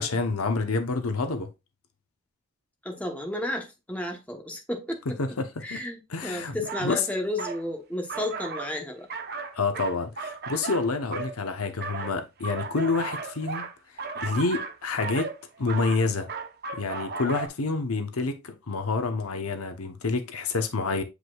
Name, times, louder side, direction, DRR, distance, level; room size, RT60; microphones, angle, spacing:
voice 1, 0.0-1.5 5.2-5.8 6.1-7.0 9.5-13.6 14.2-15.3 15.6-16.3 16.7-21.0, left 3 dB, 85° left, 0.9 m, -28 dB
voice 2, 2.8-5.2 5.6-9.1, left 1 dB, 5° left, 1.0 m, -32 dB
sound 1, 6.6-6.9 7.4-7.6 8.1-8.8 9.1-11.4 11.8-17.5, right 4 dB, 45° right, 0.9 m, -35 dB
8.1 x 5.0 x 2.3 m
head